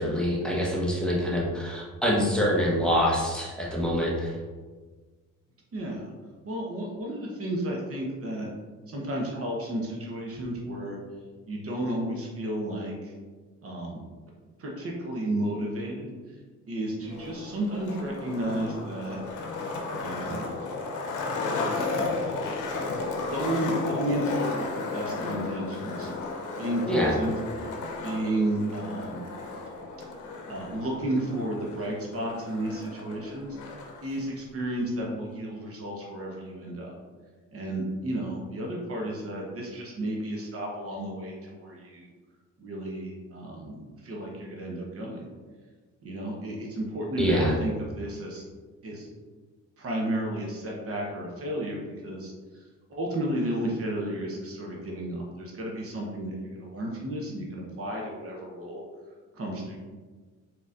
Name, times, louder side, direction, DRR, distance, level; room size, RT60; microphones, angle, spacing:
voice 1, 0.0-4.4 26.9-27.1 47.2-47.5, equal, 5° left, -5 dB, 1.0 m, -25 dB
voice 2, 5.7-6.1 6.4-8.5 8.9-11.0 11.5-13.1 13.6-14.0 14.6-16.4 16.7-19.2 20.0-20.4 23.3-24.6 24.9-26.1 26.6-27.3 28.0-29.3 30.5-33.5 34.0-36.9 37.5-42.1 42.6-45.2 46.0-48.4 48.8-49.1 49.8-52.6 52.9-58.8 59.3-59.8, right 1 dB, 50° right, -1 dB, 1.0 m, -32 dB
Skateboard, 17.0-34.0, left 3 dB, 80° left, 0.7 m, -34 dB
4.1 x 3.9 x 2.5 m, 1.4 s
cardioid pair, 90°, 30 cm